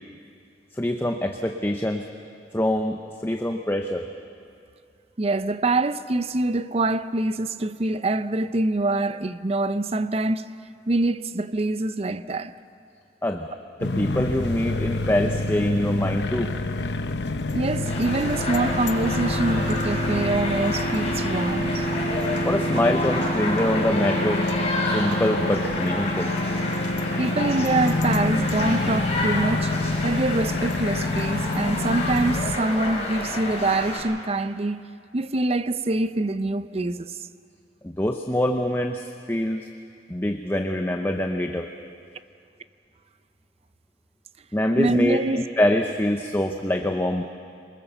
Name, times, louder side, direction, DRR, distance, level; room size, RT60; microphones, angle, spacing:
voice 1, 0.7-2.0 2.5-3.0 3.2-4.1 13.2-13.5 13.8-16.5 22.5-24.4 24.8-26.3 37.8-39.7 40.1-41.7 44.5-47.3, left 1 dB, 15° left, 0.7 m, -24 dB
voice 2, 5.2-10.6 10.9-12.5 17.5-21.9 27.2-29.7 30.0-34.8 35.1-37.2 44.8-45.4, right 2 dB, 35° right, 0.6 m, -25 dB
sound 1, 13.8-32.6, left 2 dB, 80° left, 0.9 m, -27 dB
sound 2, 17.5-30.5, right 4 dB, 85° right, 6.0 m, -34 dB
sound 3, 17.8-34.0, left 2 dB, 35° left, 5.2 m, -30 dB
23.5 x 21.0 x 6.9 m
head